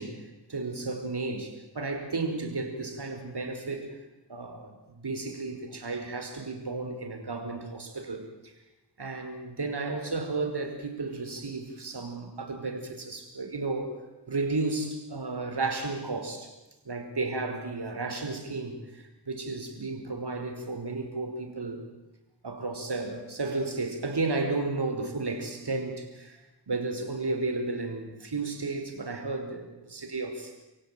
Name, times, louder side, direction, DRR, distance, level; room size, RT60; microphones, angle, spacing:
voice 1, 0.0-3.9 4.3-8.5 9.0-14.0 14.3-16.5 16.9-21.8 22.4-30.5, right 3 dB, 65° right, 6 dB, 5.3 m, -33 dB
30.0 x 16.5 x 9.4 m, 1.1 s
cardioid pair, 45°, 43 cm